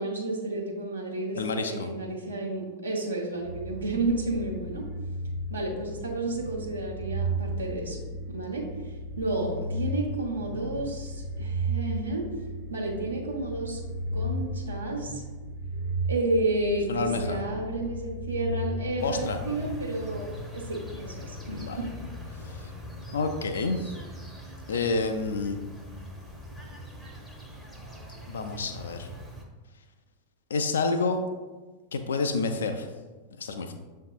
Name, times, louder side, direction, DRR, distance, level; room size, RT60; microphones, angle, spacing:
voice 1, 0.0-4.9 5.5-8.0 8.3-8.6 9.2-12.3 12.7-13.8 14.1-15.2 16.1-21.9, right 2 dB, 75° right, -1 dB, 0.9 m, -31 dB
voice 2, 1.3-1.9 9.9-10.0 16.9-17.4 19.0-19.4 21.5-21.8 22.5-22.7 23.1-23.9 24.7-25.6 28.3-29.1 30.5-31.2 31.9-32.9 33.4-33.7, left 3 dB, 65° left, 7 dB, 0.4 m, -29 dB
sound 1, 3.4-20.3, right 1 dB, 45° right, 0.4 m, -35 dB
sound 2, 19.0-29.5, left 1 dB, ahead, 0.7 m, -42 dB
7.1 x 2.7 x 2.3 m, 1.3 s
figure-of-eight pair, 90°, 0 cm